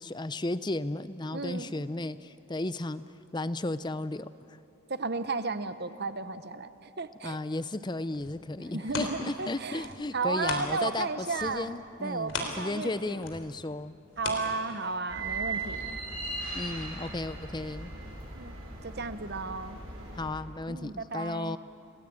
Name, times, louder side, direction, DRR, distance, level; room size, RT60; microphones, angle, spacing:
voice 1, 0.0-3.0 3.3-4.6 7.2-14.0 16.5-17.9 20.2-21.6, left 2 dB, 20° left, 14 dB, 0.5 m, -34 dB
voice 2, 1.3-1.9 4.9-7.4 8.7-11.7 12.0-13.2 14.2-16.0 18.3-18.6 18.8-19.8 20.7-21.6, right 3 dB, 45° right, 12 dB, 1.0 m, -34 dB
sound 1, 8.1-11.1 11.3-15.2 15.7-15.8, left 3 dB, 55° left, 3.7 m, -39 dB
sound 2, 15.1-20.3, right 3 dB, 65° right, 7.8 m, -38 dB
29.5 x 20.0 x 8.8 m, 2.8 s
head